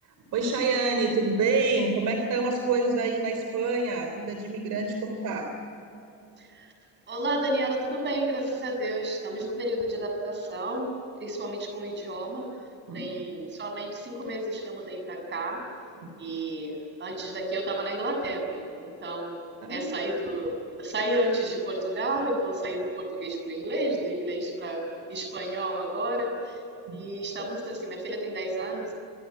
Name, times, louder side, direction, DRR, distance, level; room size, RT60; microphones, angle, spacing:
voice 1, 0.3-5.5 12.9-13.0 16.0-16.1 19.6-19.9 26.9-27.0, right 3 dB, 55° right, 4 dB, 3.6 m, -27 dB
voice 2, 6.4-6.7 7.1-10.9 11.2-12.5 12.9-15.6 16.2-26.6 26.9-28.9, right 1 dB, 30° right, 4 dB, 6.8 m, -31 dB
26.5 x 22.0 x 9.6 m, 2.9 s
cardioid pair, 160°, 36 cm